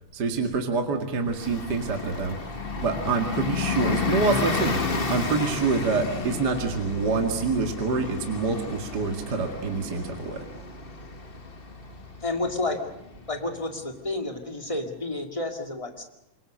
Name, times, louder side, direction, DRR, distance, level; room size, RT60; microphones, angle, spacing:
voice 1, 0.1-2.4 2.8-10.4, right 4 dB, 35° right, 4 dB, 2.2 m, -26 dB
Bus, 1.3-13.6, left 4 dB, 30° left, 1.0 m, -32 dB
voice 2, 12.2-12.8 13.3-16.0, left 2 dB, 10° left, 4 dB, 2.0 m, -30 dB
26.5 x 22.0 x 6.5 m, 0.88 s
omnidirectional pair, 3.6 m